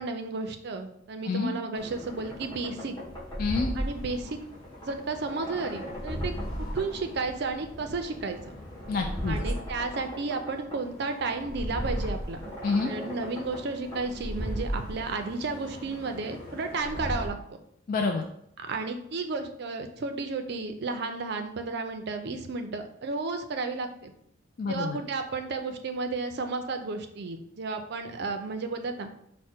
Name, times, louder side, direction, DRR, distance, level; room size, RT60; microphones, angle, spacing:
voice 1, 0.0-3.0 3.8-4.4 4.8-8.6 9.3-12.5 12.8-17.4 18.6-24.1 24.7-29.1, right 3 dB, 55° right, 6 dB, 0.4 m, -33 dB
sound 1, 1.7-17.3, equal, 20° left, 1.2 m, -37 dB
voice 2, 3.4-3.7 8.9-9.4 12.6-12.9 17.9-18.2 24.6-25.0, left 4 dB, 45° left, 2 dB, 0.3 m, -27 dB
4.7 x 2.1 x 4.3 m, 0.71 s
head